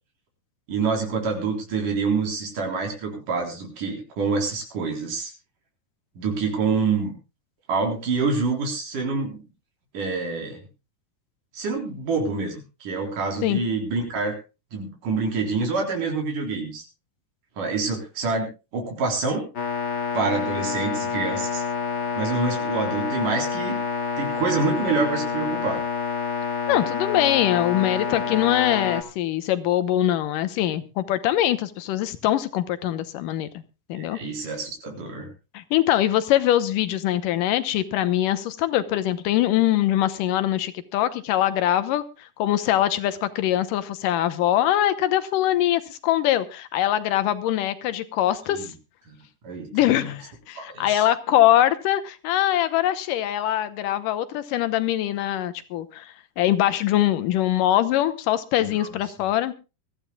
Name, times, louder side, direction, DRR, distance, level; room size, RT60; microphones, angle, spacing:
voice 1, 0.7-5.3 6.2-7.1 7.7-9.4 9.9-10.6 11.5-14.4 14.7-16.8 17.6-19.5 20.1-21.6 22.2-23.8 24.2-25.8 33.9-35.3 48.5-48.6 49.1-49.2 49.4-50.1 50.6-51.0 58.6-59.0, right 4 dB, 70° right, 2 dB, 5.3 m, -27 dB
sound 1, 19.6-29.0, left 6 dB, 35° left, 2.3 m, -28 dB
voice 2, 26.7-33.5 33.9-34.2 35.5-48.7 49.7-59.5, left 13 dB, 80° left, 12 dB, 2.5 m, -23 dB
23.0 x 14.5 x 2.3 m, 0.30 s
omnidirectional pair, 3.8 m